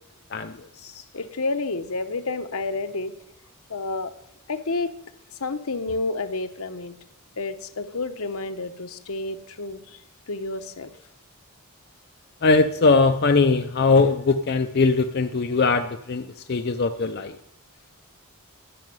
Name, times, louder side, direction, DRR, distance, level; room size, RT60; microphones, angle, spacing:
voice 1, 0.3-1.0 12.4-17.3, left 3 dB, 45° left, 7 dB, 0.5 m, -21 dB
voice 2, 1.1-3.1 3.7-4.1 4.5-4.9 5.4-6.9 7.4-10.0 10.3-10.9, left 3 dB, 75° left, 9 dB, 1.0 m, -30 dB
12.0 x 6.4 x 9.4 m, 0.75 s
head